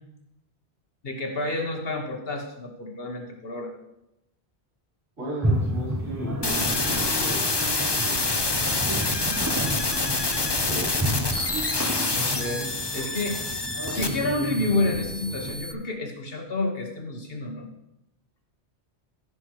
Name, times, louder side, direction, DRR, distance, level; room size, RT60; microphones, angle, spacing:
voice 1, 1.0-3.7 12.1-12.7 12.9-13.4 13.9-17.7, left 2 dB, 60° left, 3 dB, 1.7 m, -29 dB
voice 2, 5.2-7.4 7.7-8.5 10.6-11.1, right 2 dB, 75° right, -8 dB, 4.9 m, -36 dB
sound 1, 5.4-15.6, right 1 dB, 15° right, 0.9 m, -31 dB
sound 2, 6.4-15.7, left 3 dB, 25° left, 0.8 m, -27 dB
15.0 x 6.2 x 4.8 m, 0.89 s
omnidirectional pair, 1.1 m